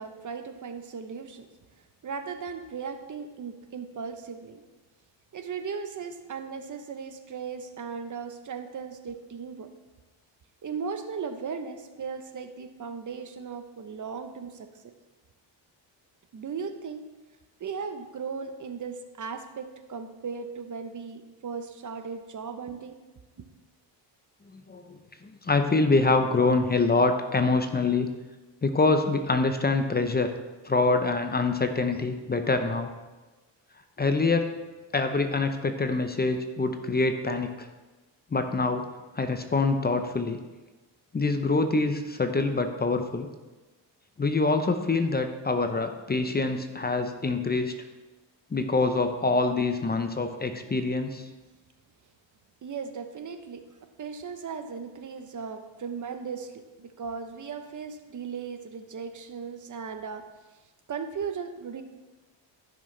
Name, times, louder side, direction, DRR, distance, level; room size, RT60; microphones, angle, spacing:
voice 1, 0.0-1.5 2.0-4.6 5.3-9.7 10.6-14.9 16.3-17.0 17.6-23.0 52.6-53.6 54.0-60.3 60.9-61.8, right 6 dB, 40° right, 8 dB, 0.9 m, -37 dB
voice 2, 24.5-25.0 25.4-28.1 28.6-30.3 30.6-32.9 34.0-34.5 34.9-37.7 38.3-38.8 39.1-40.4 41.1-43.3 44.2-47.7 48.5-51.3, left 3 dB, 20° left, 7 dB, 0.8 m, -25 dB
15.0 x 6.3 x 3.3 m, 1.2 s
cardioid pair, 85°, 45 cm